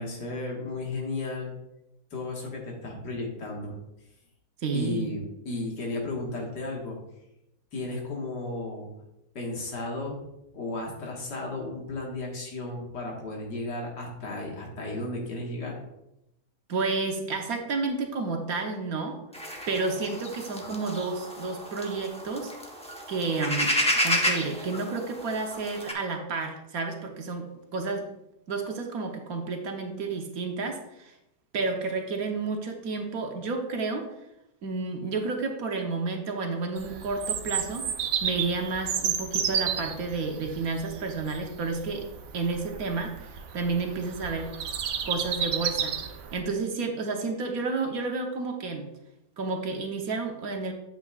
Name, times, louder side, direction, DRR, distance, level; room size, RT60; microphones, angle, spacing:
voice 1, 0.0-1.5 2.1-3.8 4.7-7.0 7.7-8.9 9.4-10.2 10.5-15.8, left 2 dB, 80° left, -1 dB, 2.2 m, -34 dB
voice 2, 4.6-5.1 16.7-19.2 19.7-22.5 23.1-28.1 28.5-31.1 31.5-34.1 34.6-37.9 38.2-42.1 42.3-44.5 45.0-46.0 46.3-48.9 49.4-50.7, right 3 dB, 60° right, 3 dB, 1.3 m, -31 dB
sound 1, 19.3-25.9, equal, 5° left, 0.5 m, -31 dB
Bird vocalization bird call bird song, 36.8-46.4, right 8 dB, 85° right, 1.4 m, -32 dB
8.2 x 7.9 x 2.4 m, 0.86 s
omnidirectional pair, 1.8 m